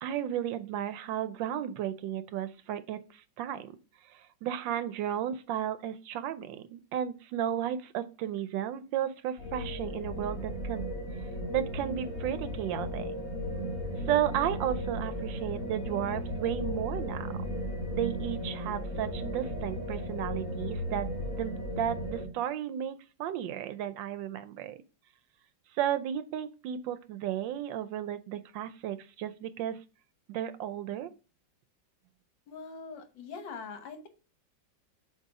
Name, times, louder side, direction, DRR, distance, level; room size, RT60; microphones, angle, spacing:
voice 1, 0.0-3.8 4.1-10.9 11.5-13.1 14.1-17.3 17.9-21.1 21.4-24.8 25.8-29.8 30.3-31.1, right 10 dB, 80° right, 12 dB, 1.3 m, -33 dB
sound 1, 9.4-22.3, equal, 45° left, 2.0 m, -35 dB
voice 2, 32.5-34.1, left 5 dB, 75° left, 7 dB, 1.7 m, -42 dB
7.5 x 2.7 x 4.8 m, 0.34 s
omnidirectional pair, 2.1 m